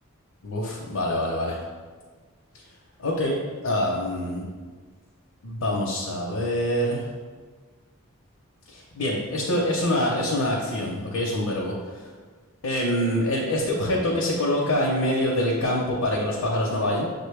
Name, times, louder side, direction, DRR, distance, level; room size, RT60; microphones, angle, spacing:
voice 1, 0.4-1.6 3.0-3.4 3.6-4.5 5.4-7.0 8.7-11.7 12.6-17.1, left 1 dB, 85° left, -3 dB, 0.7 m, -25 dB
6.3 x 2.2 x 3.3 m, 1.5 s
head